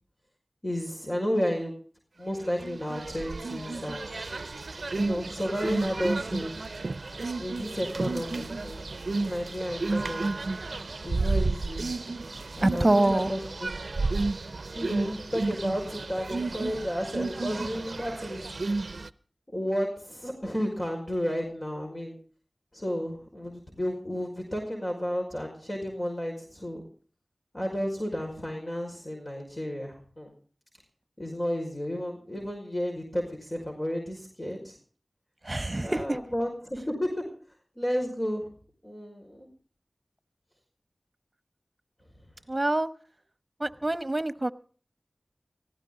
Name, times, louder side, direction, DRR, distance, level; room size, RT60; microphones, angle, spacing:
voice 1, 0.6-1.7 2.2-4.3 5.0-6.8 7.4-10.4 11.0-11.9 12.6-13.7 14.8-18.4 19.5-22.2 22.7-26.8 27.5-30.3 31.2-34.8 35.8-37.2 37.8-38.5 38.8-39.5, equal, 35° left, 0 dB, 5.4 m, -32 dB
sound 1, 2.6-19.1, right 3 dB, 80° right, 0.6 m, -32 dB
voice 2, 12.6-13.3 35.4-36.2 42.5-42.9 43.6-44.5, right 2 dB, 40° right, 13 dB, 1.1 m, -25 dB
19.0 x 16.5 x 3.9 m, 0.43 s
wide cardioid pair, 40°, 0 cm